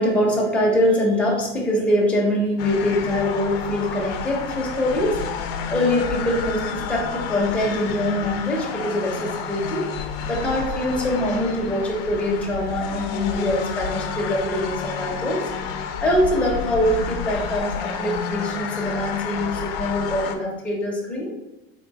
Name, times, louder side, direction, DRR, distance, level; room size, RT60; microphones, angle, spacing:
voice 1, 0.0-5.2 5.7-9.9 10.3-15.4 16.0-21.3, left 1 dB, 5° left, -4 dB, 0.6 m, -23 dB
sound 1, 2.6-20.4, left 6 dB, 75° left, 0.6 m, -30 dB
3.6 x 2.5 x 3.9 m, 1.0 s
cardioid pair, 165°, 30 cm